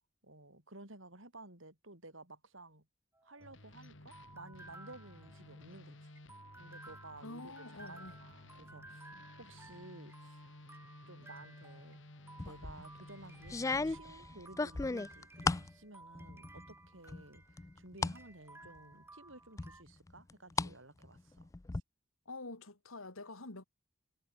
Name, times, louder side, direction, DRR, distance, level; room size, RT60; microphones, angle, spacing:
voice 1, 0.2-2.9 3.2-6.1 6.6-10.6 11.1-12.0 12.4-21.8, right 2 dB, 65° right, 7.7 m, -55 dB
sound 1, 3.1-19.8, right 2 dB, 10° right, 3.1 m, -57 dB
sound 2, 3.4-14.0, left 1 dB, 60° left, 2.5 m, -55 dB
voice 2, 7.2-8.2 22.2-23.6, left 2 dB, 85° left, 3.1 m, -47 dB
sound 3, 12.4-12.8 13.5-15.7 16.2-16.7 17.1-18.2 18.6-18.7 19.6-20.7 21.0-21.8, left 3 dB, 15° left, 0.3 m, -36 dB
head